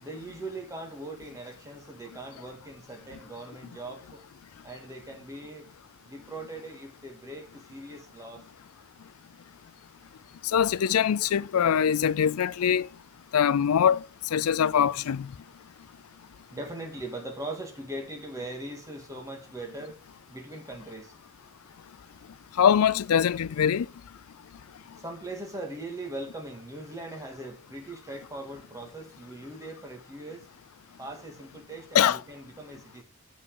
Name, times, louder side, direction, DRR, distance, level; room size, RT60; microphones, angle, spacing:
voice 1, 0.0-4.0 4.6-5.7 6.1-8.4 16.5-20.0 20.3-21.1 25.0-30.4 31.0-33.0, right 2 dB, 15° right, 1.8 m, -40 dB
voice 2, 10.5-12.9 13.3-14.0 14.3-15.3 22.6-23.9 31.9-32.2, left 8 dB, 80° left, 0.4 m, -23 dB
8.2 x 5.5 x 5.3 m
head